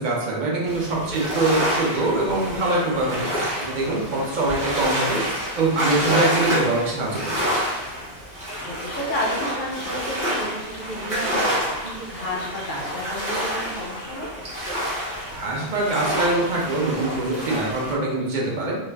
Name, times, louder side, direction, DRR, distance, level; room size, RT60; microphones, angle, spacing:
voice 1, 0.0-5.2 5.6-7.5 15.3-18.8, right 2 dB, 50° right, -3 dB, 0.6 m, -24 dB
sound 1, 0.7-17.9, equal, 30° right, 0.9 m, -28 dB
voice 2, 0.8-1.2 8.3-14.4, left 1 dB, 55° left, -3 dB, 0.6 m, -32 dB
2.4 x 2.1 x 3.2 m, 0.96 s
omnidirectional pair, 1.3 m